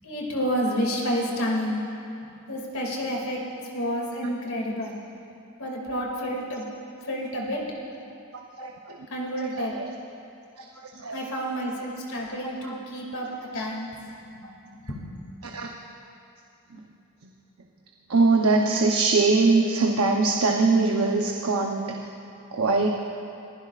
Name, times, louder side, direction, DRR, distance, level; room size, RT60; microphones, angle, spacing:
voice 1, 0.0-1.9 2.2-5.0 5.6-6.7 7.0-7.8 9.1-9.8 11.1-15.1, equal, 75° left, -2 dB, 2.5 m, -30 dB
voice 2, 8.3-9.0 9.6-9.9 10.6-11.2 12.6-12.8 15.4-15.7 16.7-16.8 18.1-22.1 22.5-22.9, right 3 dB, 75° right, 1 dB, 0.8 m, -23 dB
23.0 x 15.5 x 2.5 m, 2.6 s
head